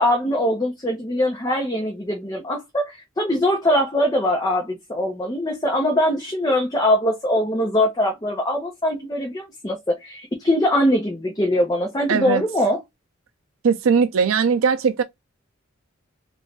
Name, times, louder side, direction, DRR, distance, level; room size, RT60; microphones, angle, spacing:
voice 1, 0.0-12.8, left 1 dB, 20° left, 0.7 m, -22 dB
voice 2, 12.1-12.4 13.6-15.0, right 6 dB, 80° right, 0.4 m, -19 dB
3.1 x 2.5 x 3.1 m
head